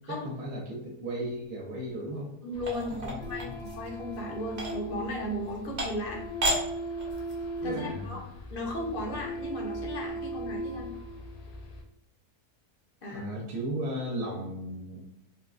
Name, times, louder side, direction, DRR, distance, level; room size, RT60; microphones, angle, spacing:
voice 1, 0.1-2.3 2.9-3.6 7.6-8.1 13.1-15.0, right 1 dB, 70° right, -3 dB, 1.2 m, -36 dB
voice 2, 2.4-6.3 7.6-8.2 8.5-10.9 13.0-13.3, left 1 dB, 55° left, -1 dB, 0.6 m, -36 dB
sound 1, 2.5-11.8, right 1 dB, 75° left, 1.0 m, -39 dB
sound 2, 2.6-3.9 4.5-4.7 5.4-5.5 5.8-6.1 6.4-6.6 7.0-7.4, equal, 40° right, 0.7 m, -31 dB
3.6 x 2.4 x 2.3 m, 0.82 s
omnidirectional pair, 1.6 m